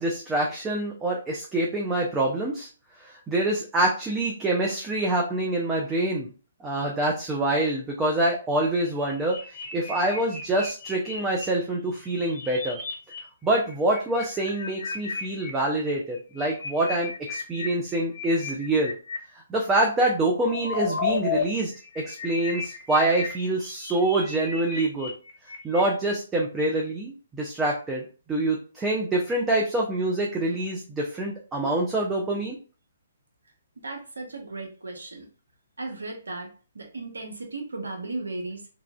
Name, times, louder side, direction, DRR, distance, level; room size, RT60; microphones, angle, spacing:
voice 1, 0.0-2.7 3.0-6.3 6.6-12.8 13.4-18.9 19.5-25.1 25.6-32.6, right 1 dB, 15° right, -1 dB, 0.5 m, -26 dB
sound 1, 8.8-11.4 11.9-13.2 13.4-15.5 16.1-19.2 19.9-21.4 21.7-26.1, left 5 dB, 45° left, 1.0 m, -34 dB
voice 2, 33.8-35.2 35.8-38.6, right 2 dB, 80° right, 2 dB, 0.9 m, -36 dB
3.1 x 2.4 x 2.3 m, 0.36 s
figure-of-eight pair, 135°, 0 cm